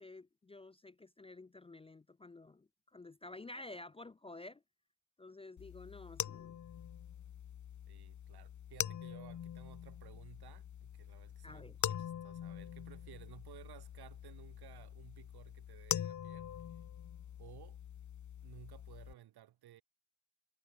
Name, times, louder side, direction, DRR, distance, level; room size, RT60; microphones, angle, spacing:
voice 1, 0.0-4.6 5.2-6.6 11.4-11.8, left 2 dB, 15° left, 0.4 m, -51 dB
sound 1, 5.6-19.1, left 10 dB, 50° left, 0.8 m, -44 dB
voice 2, 7.9-16.8 17.4-17.8 18.4-19.8, right 12 dB, 80° right, 1.9 m, -57 dB
supercardioid pair, 60°, 38 cm